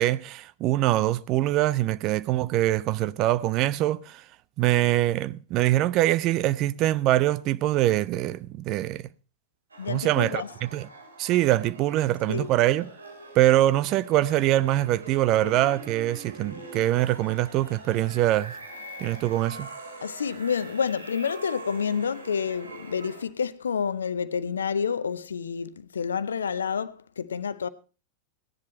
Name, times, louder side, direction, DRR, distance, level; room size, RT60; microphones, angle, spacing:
voice 1, 0.0-4.2 4.6-9.0 9.9-10.4 10.7-10.9 11.2-12.9 13.4-18.5 19.0-19.7, right 14 dB, 40° right, 0.6 m, -23 dB
sound 1, 9.7-23.2, right 2 dB, 75° right, 3.0 m, -43 dB
voice 2, 9.8-10.5 12.3-12.5 20.0-27.7, left 6 dB, 70° left, 0.7 m, -29 dB
17.0 x 10.5 x 4.3 m
figure-of-eight pair, 90°, 0 cm